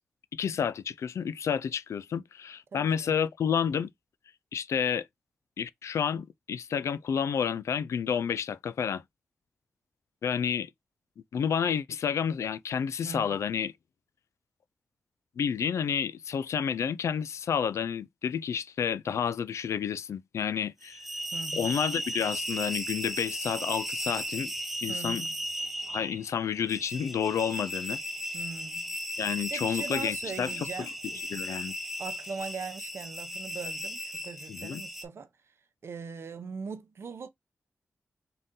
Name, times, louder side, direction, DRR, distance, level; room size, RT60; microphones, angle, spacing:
voice 1, 0.3-3.9 4.5-5.1 5.6-9.0 10.2-10.7 11.3-13.7 15.4-21.1 21.5-24.5 24.8-25.2 25.9-28.0 29.2-30.7 31.3-31.7 34.5-34.8, left 7 dB, 80° left, 0.3 m, -30 dB
voice 2, 2.7-3.2 13.0-13.4 21.3-21.8 24.9-25.3 28.3-29.0 29.5-30.9 32.0-35.3 35.8-37.3, right 5 dB, 60° right, 0.7 m, -40 dB
sound 1, 20.8-35.0, equal, 5° right, 0.6 m, -36 dB
3.8 x 2.7 x 3.6 m
wide cardioid pair, 125°, 5 cm